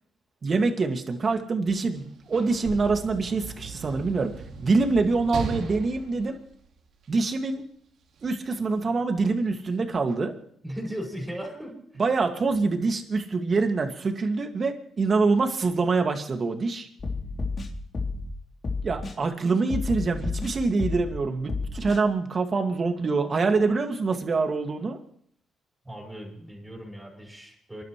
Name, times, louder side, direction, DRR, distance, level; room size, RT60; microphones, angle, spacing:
voice 1, 0.4-6.4 7.1-7.6 8.2-10.3 12.0-16.9 18.8-25.0, right 4 dB, 40° right, 5 dB, 2.1 m, -25 dB
Sliding door / Slam, 1.9-7.3 8.2-8.3, right 4 dB, 80° right, 2.6 m, -38 dB
voice 2, 10.6-12.0 25.9-27.8, equal, 10° right, -1 dB, 5.3 m, -37 dB
sound 1, 17.0-18.3 18.6-19.2 19.7-21.2 21.5-22.0, left 3 dB, 45° left, 3.0 m, -31 dB
29.5 x 12.0 x 3.2 m, 0.63 s
cardioid pair, 95°, 0 cm